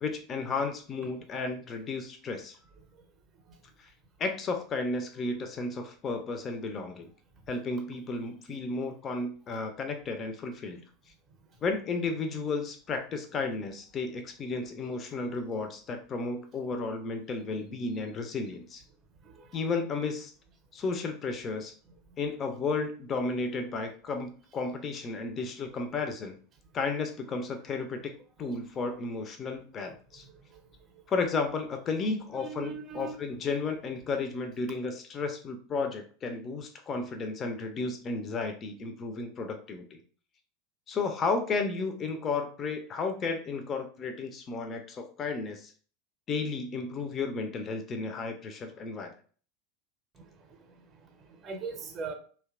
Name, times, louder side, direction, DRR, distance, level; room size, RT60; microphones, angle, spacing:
voice 1, 0.0-2.6 3.8-3.9 4.2-7.1 7.5-10.8 11.6-18.8 19.5-20.3 20.7-21.7 22.2-26.4 26.7-28.1 28.4-30.2 31.1-40.0 40.9-45.7 46.3-49.1, left 4 dB, 30° left, 6 dB, 0.4 m, -33 dB
voice 2, 19.2-19.6 30.1-30.6 30.9-31.0 32.4-33.2 50.1-52.1, right 5 dB, 35° right, 5 dB, 0.5 m, -42 dB
2.7 x 2.2 x 2.3 m, 0.43 s
figure-of-eight pair, 80°, 0 cm